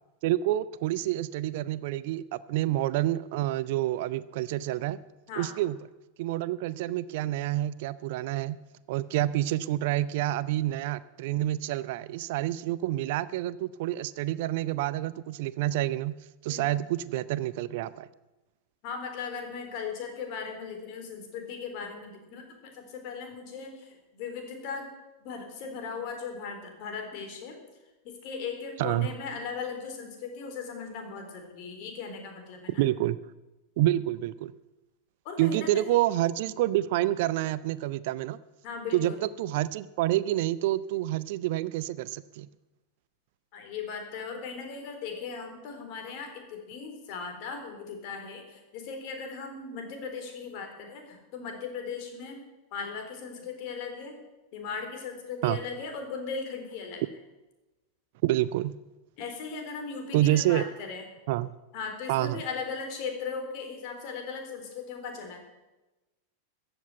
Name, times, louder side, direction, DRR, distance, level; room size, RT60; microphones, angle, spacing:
voice 1, 0.2-5.0 5.4-5.8 6.2-8.6 8.9-16.2 16.4-18.1 28.8-29.1 32.8-33.2 33.8-34.5 35.4-38.4 38.9-39.1 39.4-42.5 55.4-55.6 58.2-58.7 60.1-60.6 61.3-61.5 62.1-62.4, right 14 dB, 50° right, 18 dB, 0.5 m, -28 dB
voice 2, 18.8-24.9 25.2-27.6 28.0-32.9 35.2-36.0 38.6-39.2 43.5-52.4 52.7-54.2 54.5-57.0 59.2-61.0 61.7-65.4, left 5 dB, 45° left, 4 dB, 3.7 m, -38 dB
14.5 x 7.9 x 9.2 m, 1.1 s
figure-of-eight pair, 90°, 0 cm